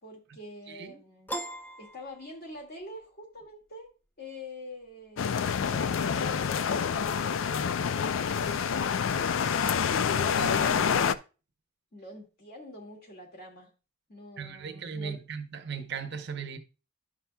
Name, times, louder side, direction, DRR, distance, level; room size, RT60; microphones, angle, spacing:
voice 1, 0.0-1.3 1.8-3.9 4.2-9.5 11.9-13.7 14.1-15.2, left 1 dB, 45° left, 2.0 m, -46 dB
voice 2, 0.7-1.0 10.4-11.1 14.4-16.6, right 6 dB, 55° right, 0.7 m, -38 dB
Piano, 1.3-2.8, right 1 dB, 10° left, 0.5 m, -39 dB
sound 1, 5.2-11.1, left 7 dB, 65° left, 0.4 m, -27 dB
11.5 x 5.7 x 2.2 m
head